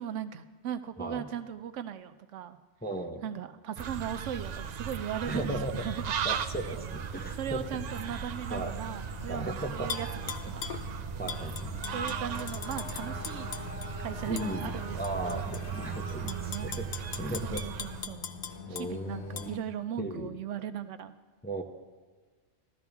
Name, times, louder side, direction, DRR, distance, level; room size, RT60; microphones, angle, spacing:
voice 1, 0.0-2.6 3.2-5.6 5.8-6.0 6.7-6.9 7.3-10.1 10.5-10.6 11.2-11.4 11.9-13.6 14.0-15.0 15.2-15.5 16.2-16.7 17.4-18.2 18.7-21.1, right 9 dB, 80° right, 11 dB, 1.0 m, -38 dB
voice 2, 2.8-3.2 5.3-5.7 6.2-7.8 8.5-8.8 9.2-9.9 11.2-11.8 14.3-17.6 18.7-19.7 20.0-20.3 21.4-21.6, right 1 dB, 10° left, 3 dB, 0.6 m, -36 dB
sound 1, 3.8-18.1, right 7 dB, 65° right, 0.4 m, -37 dB
sound 2, 5.2-19.6, left 5 dB, 70° left, 1.2 m, -46 dB
Tap / Glass, 9.9-10.8 11.3-13.9 14.4-14.5 15.0-15.6 16.1-18.9 19.4-19.5, left 6 dB, 50° left, 0.6 m, -39 dB
14.5 x 12.5 x 3.5 m, 1.5 s
omnidirectional pair, 1.2 m